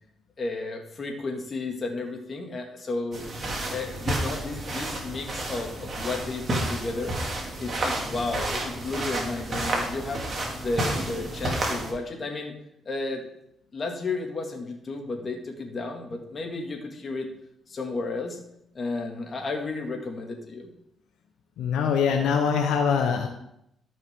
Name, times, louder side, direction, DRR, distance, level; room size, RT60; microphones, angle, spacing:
voice 1, 0.4-3.2 3.7-7.1 7.6-10.2 10.6-12.5 12.9-13.2 13.7-17.3 17.7-18.4 18.7-20.7, left 3 dB, 40° left, 2 dB, 2.1 m, -33 dB
sound 1, 3.1-11.9, right 1 dB, 40° right, 2.4 m, -30 dB
voice 2, 21.6-23.3, left 6 dB, 85° left, 3 dB, 1.0 m, -23 dB
13.5 x 5.6 x 3.7 m, 0.78 s
cardioid pair, 90°, 0 cm